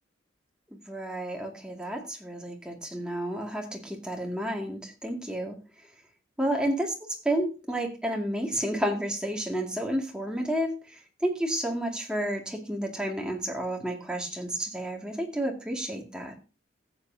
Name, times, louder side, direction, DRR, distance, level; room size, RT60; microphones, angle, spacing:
voice 1, 0.7-5.9 6.4-6.9 7.2-16.4, right 1 dB, 5° right, 0 dB, 2.1 m, -31 dB
15.5 x 8.3 x 2.7 m, 0.31 s
head